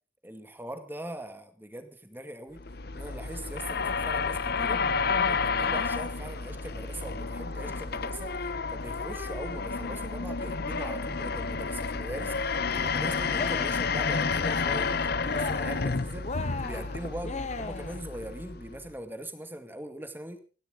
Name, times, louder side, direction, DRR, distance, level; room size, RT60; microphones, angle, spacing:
voice 1, 0.2-2.6 2.9-4.8 5.2-8.3 8.7-16.3 16.6-20.4, right 1 dB, 10° right, 7 dB, 2.1 m, -41 dB
sound 1, 2.6-18.9, left 4 dB, 50° left, 0.8 m, -30 dB
Cheering, 13.3-13.9 14.3-15.0 15.2-15.9 16.2-18.0, left 3 dB, 35° left, 1.1 m, -37 dB
28.5 x 12.0 x 3.9 m, 0.37 s
head